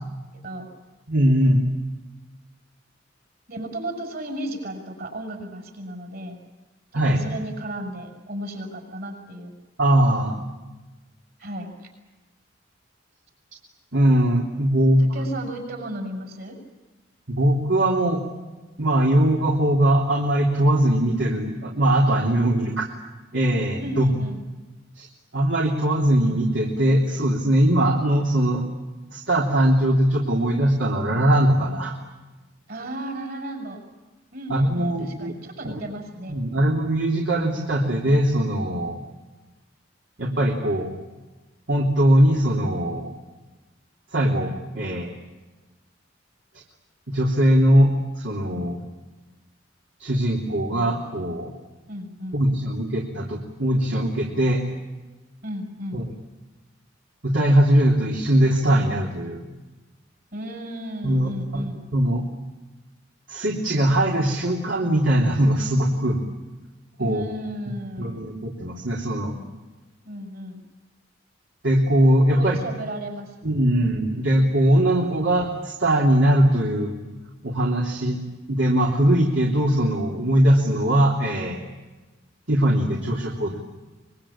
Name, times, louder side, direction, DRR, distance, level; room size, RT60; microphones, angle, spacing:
voice 1, 1.1-1.7 6.9-7.2 9.8-10.4 13.9-15.1 17.3-18.2 18.8-22.9 23.3-24.1 25.0-25.1 25.3-28.6 29.1-31.9 34.5-35.4 35.6-35.8 36.3-39.0 40.2-40.9 41.7-43.1 44.1-45.1 47.1-48.8 50.0-51.5 52.3-54.6 55.9-56.1 57.2-59.5 61.0-61.7 61.9-62.2 63.3-66.2 67.0-67.2 68.0-69.3 71.6-72.6 73.4-76.9 77.4-78.2 78.5-81.6 82.5-83.6, right 1 dB, 65° right, -2 dB, 3.2 m, -21 dB
voice 2, 3.5-6.4 6.9-9.5 11.4-11.7 15.0-16.6 23.8-24.4 32.7-33.8 34.3-36.4 51.9-52.4 55.4-56.0 60.3-61.9 67.0-68.3 70.0-70.6 72.3-73.7, right 1 dB, 50° right, 3 dB, 7.0 m, -34 dB
24.5 x 22.5 x 8.8 m, 1.2 s
head